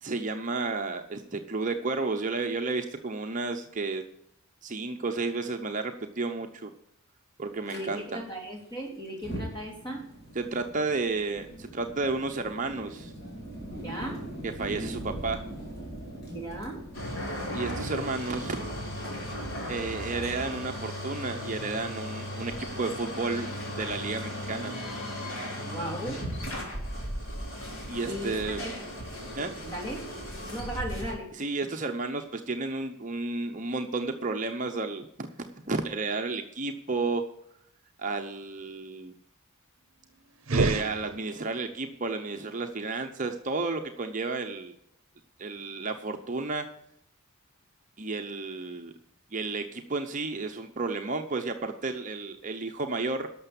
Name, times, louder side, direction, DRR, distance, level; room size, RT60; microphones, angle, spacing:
voice 1, 0.0-4.0 4.6-6.7 7.4-8.2 10.3-13.1 14.4-15.4 17.5-18.6 19.7-23.5 23.8-24.7 27.9-28.6 29.3-29.5 31.3-37.2 38.0-39.1 40.5-44.7 45.4-46.7 48.0-48.9 49.3-53.3, right 3 dB, 35° right, 4 dB, 0.8 m, -32 dB
Fire, 7.7-7.8 9.1-18.1, right 1 dB, 45° left, 3.7 m, -41 dB
voice 2, 7.7-10.0 13.7-14.2 16.3-16.8 25.7-26.2 28.0-28.7 29.6-30.0 30.5-31.3, right 1 dB, 20° left, -1 dB, 3.4 m, -36 dB
sound 1, 16.9-31.1, equal, 65° left, 3.5 m, -36 dB
sound 2, 40.4-41.7, right 3 dB, 65° right, 0.8 m, -29 dB
12.0 x 6.8 x 7.1 m, 0.75 s
head